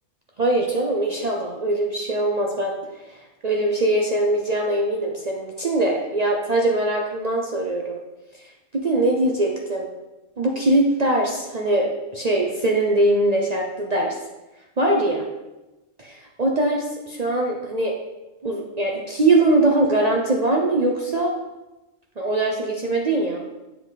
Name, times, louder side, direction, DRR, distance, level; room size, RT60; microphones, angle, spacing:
voice 1, 0.4-2.8 3.4-8.0 8.7-9.9 10.4-14.2 14.8-15.3 16.0-17.9 18.4-21.3 22.2-23.4, right 2 dB, 40° right, -1 dB, 0.7 m, -22 dB
7.9 x 4.7 x 4.0 m, 1.1 s
omnidirectional pair, 1.3 m